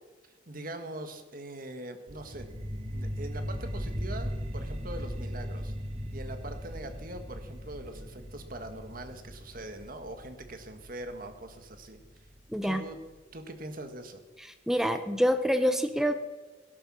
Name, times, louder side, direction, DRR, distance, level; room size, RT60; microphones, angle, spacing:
voice 1, 0.3-2.5 2.9-5.7 6.1-12.3 12.6-13.0 13.3-14.2, right 1 dB, 50° right, 7 dB, 1.7 m, -42 dB
sound 1, 2.1-13.1, equal, 35° right, 1.6 m, -38 dB
voice 2, 12.5-12.8 14.7-16.1, equal, ahead, 9 dB, 0.7 m, -26 dB
17.0 x 11.5 x 6.3 m, 1.3 s
head